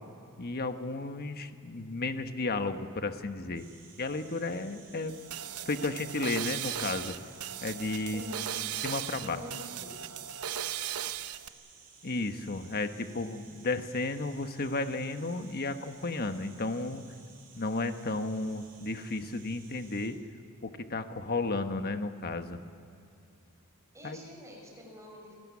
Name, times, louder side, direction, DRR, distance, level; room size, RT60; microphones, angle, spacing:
voice 1, 0.4-3.7 4.0-5.1 5.6-7.2 7.6-8.2 8.8-9.4 12.0-17.0 17.6-20.2 20.6-22.6 24.0-24.2, left 3 dB, 45° left, 8 dB, 1.3 m, -33 dB
sound 1, 3.5-20.1, right 5 dB, 45° right, 6.2 m, -56 dB
sound 2, 5.1-11.5, right 10 dB, 80° right, 0.8 m, -37 dB
voice 2, 8.1-8.5 8.9-10.0 23.9-25.3, left 1 dB, 15° right, 0 dB, 6.1 m, -46 dB
29.0 x 18.5 x 8.5 m, 2.6 s
head